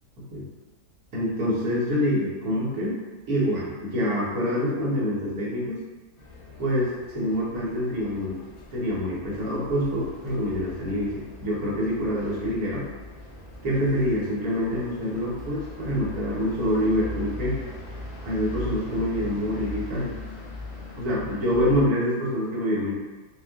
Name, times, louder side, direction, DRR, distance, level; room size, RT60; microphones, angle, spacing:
voice 1, 1.1-3.0 3.3-5.8 6.6-8.3 8.7-12.8 13.6-17.6 18.2-20.1 21.0-22.9, equal, 75° right, -5 dB, 1.6 m, -26 dB
sound 1, 6.2-21.9, left 2 dB, 45° left, 0.9 m, -40 dB
4.1 x 2.4 x 3.6 m, 1.2 s
omnidirectional pair, 1.6 m